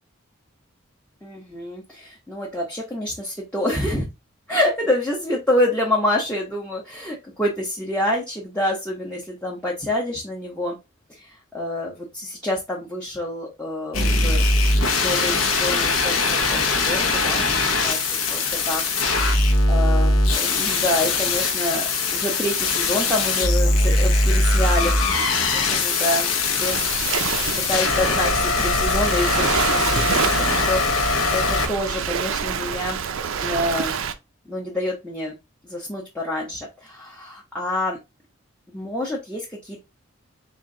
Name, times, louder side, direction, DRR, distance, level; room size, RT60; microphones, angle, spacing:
voice 1, 1.2-4.1 4.5-10.8 11.2-14.4 14.9-18.0 18.3-18.4 18.7-18.8 19.7-26.3 26.6-27.1 27.7-30.1 30.5-33.0 33.4-34.0 34.5-35.3 35.6-38.0 38.7-39.8, left 1 dB, 5° left, -4 dB, 0.7 m, -27 dB
sound 1, 13.9-31.7, left 3 dB, 85° left, 0.9 m, -21 dB
Waves surf, 26.6-34.1, right 6 dB, 75° right, 0.5 m, -27 dB
4.3 x 2.5 x 3.6 m, 0.24 s
head